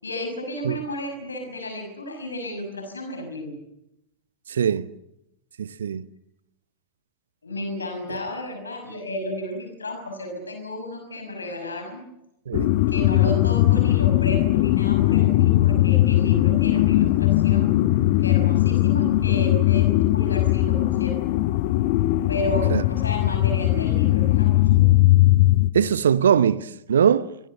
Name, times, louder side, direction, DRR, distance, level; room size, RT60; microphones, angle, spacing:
voice 1, 0.0-3.6 7.4-12.1 12.9-17.8 18.2-21.2 22.3-24.9, left 1 dB, 75° left, 6.0 m, -33 dB
voice 2, 4.5-4.9 5.6-6.0 12.5-12.7 22.7-22.8 25.7-27.3, right 8 dB, 65° right, 0.9 m, -21 dB
sound 1, 12.5-25.7, left 16 dB, 50° left, 1.2 m, -19 dB
24.5 x 24.0 x 6.9 m
figure-of-eight pair, 90°, 0 cm